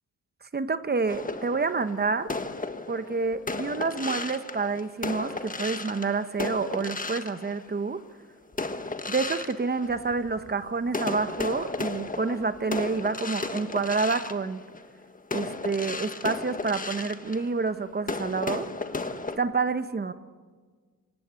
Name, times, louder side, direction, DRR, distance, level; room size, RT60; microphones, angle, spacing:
voice 1, 0.5-2.3 2.9-8.0 9.1-14.6 15.3-18.7 19.4-20.1, right 4 dB, 30° right, 11 dB, 1.1 m, -28 dB
Fireworks Crackle A, 1.1-8.0 8.5-10.5 10.9-19.4, left 3 dB, 25° left, 1.4 m, -34 dB
26.0 x 25.0 x 8.4 m, 1.6 s
wide cardioid pair, 130°, 34 cm